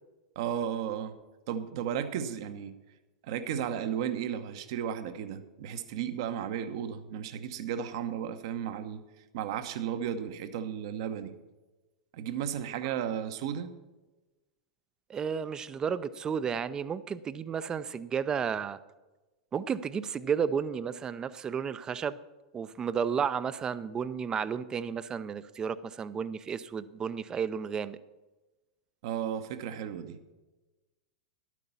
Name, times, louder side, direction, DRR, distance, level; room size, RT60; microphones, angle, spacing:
voice 1, 0.3-1.1 1.5-2.7 3.2-9.0 9.3-11.3 12.1-13.7 29.0-30.2, right 9 dB, 55° right, 10 dB, 0.9 m, -34 dB
voice 2, 15.1-18.8 19.5-22.2 22.5-28.0, right 7 dB, 20° right, 15 dB, 0.5 m, -32 dB
11.5 x 9.3 x 5.5 m, 1.1 s
figure-of-eight pair, 90°, 3 cm